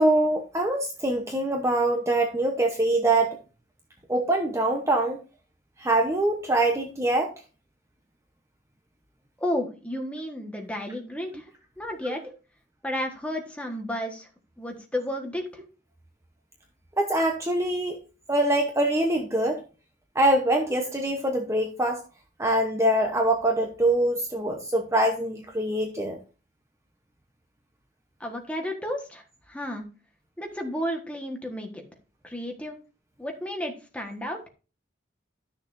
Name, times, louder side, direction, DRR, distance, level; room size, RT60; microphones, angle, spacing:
voice 1, 0.0-3.4 4.1-5.2 5.8-7.3 17.0-18.0 18.3-19.6 20.1-22.0 22.4-26.2, right 1 dB, 15° right, 2 dB, 0.9 m, -24 dB
voice 2, 9.4-11.4 11.8-12.2 12.8-14.3 14.6-15.5 28.2-29.2 29.5-29.8 30.4-31.7 32.2-32.8 33.2-34.4, left 1 dB, 5° left, 2 dB, 1.4 m, -32 dB
13.0 x 6.5 x 2.7 m, 0.34 s
head